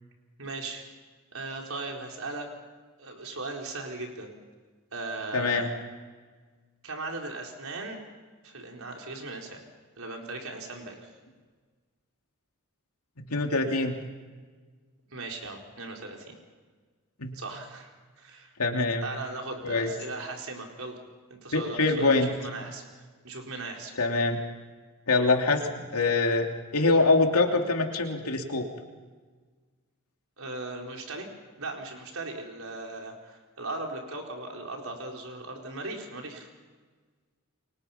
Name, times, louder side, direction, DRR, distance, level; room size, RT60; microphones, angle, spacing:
voice 1, 0.4-0.8 1.3-2.5 3.0-4.4 4.9-5.7 6.8-8.0 8.4-9.6 10.0-11.1 15.1-16.4 17.3-18.5 19.0-21.0 21.3-22.8 23.2-23.9 30.4-31.3 31.6-36.5, right 2 dB, 70° right, 1 dB, 4.4 m, -38 dB
voice 2, 5.3-5.7 13.2-14.0 17.2-17.4 18.6-19.0 19.6-19.9 21.5-22.3 24.0-24.4 25.1-28.6, left 3 dB, 85° left, 3 dB, 2.9 m, -24 dB
30.0 x 23.5 x 5.9 m, 1.4 s
head